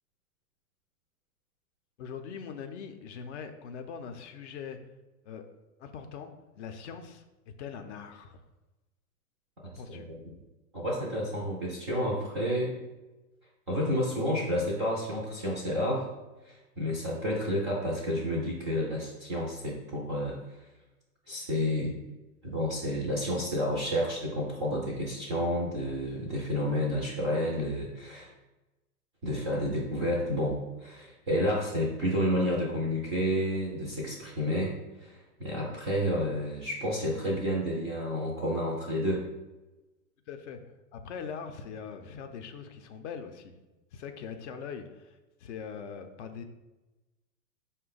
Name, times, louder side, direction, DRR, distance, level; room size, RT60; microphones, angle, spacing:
voice 1, 2.0-4.8 5.2-5.4 5.8-8.4 9.7-10.1 40.3-40.6 40.9-43.6 43.9-46.4, left 6 dB, 50° left, 6 dB, 0.5 m, -42 dB
voice 2, 9.6-10.3 10.7-12.8 13.7-16.1 16.4-20.6 21.3-21.9 22.4-28.3 29.2-39.3, equal, 20° right, -4 dB, 0.3 m, -30 dB
5.0 x 2.2 x 3.8 m, 1.1 s
hypercardioid pair, 115°, 49 cm